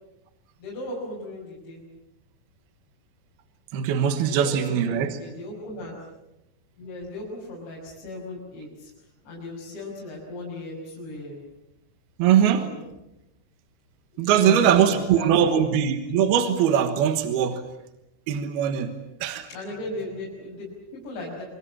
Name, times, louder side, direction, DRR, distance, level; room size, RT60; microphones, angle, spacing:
voice 1, 0.6-1.8 4.2-6.0 6.8-8.9 9.2-11.4 12.5-12.8 14.2-14.6 14.9-15.7 19.5-21.4, left 2 dB, 60° left, -5 dB, 8.0 m, -37 dB
voice 2, 3.7-5.2 12.2-12.7 14.2-17.6 18.3-19.5, right 9 dB, 65° right, 7 dB, 2.8 m, -21 dB
27.0 x 25.0 x 7.4 m, 0.92 s
omnidirectional pair, 5.8 m